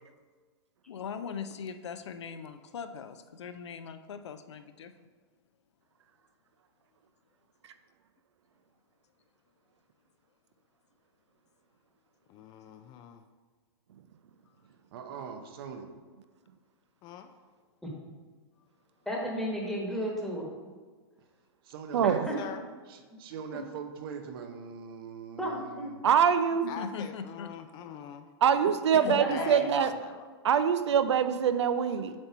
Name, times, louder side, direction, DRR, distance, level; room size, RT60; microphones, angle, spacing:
voice 1, 0.9-4.9 26.6-27.6 28.7-29.2, left 6 dB, 85° left, 9 dB, 0.5 m, -40 dB
voice 2, 12.3-13.2 17.0-17.3 22.4-22.6 26.7-28.3 29.3-30.3, left 8 dB, 30° left, 8 dB, 0.4 m, -43 dB
voice 3, 14.9-15.9 21.6-22.5 22.9-26.0, right 6 dB, 60° right, 6 dB, 0.8 m, -42 dB
voice 4, 19.1-20.5 22.0-22.3 25.4-25.9 29.1-29.7, equal, ahead, -3 dB, 1.3 m, -33 dB
voice 5, 21.9-22.3 26.0-26.6 28.4-29.9 30.4-32.1, right 8 dB, 85° right, 11 dB, 0.5 m, -24 dB
7.5 x 2.9 x 5.5 m, 1.5 s
hypercardioid pair, 135°, 14 cm